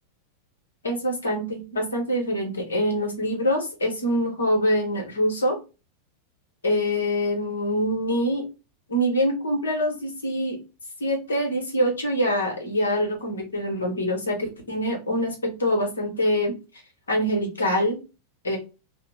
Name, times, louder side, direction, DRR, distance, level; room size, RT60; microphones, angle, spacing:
voice 1, 0.8-5.6 6.6-8.5 8.9-10.6 11.0-16.6 17.1-18.0 18.4-18.6, equal, 70° left, 2 dB, 1.0 m, -25 dB
2.3 x 2.0 x 3.5 m, 0.29 s
figure-of-eight pair, 90°, 0 cm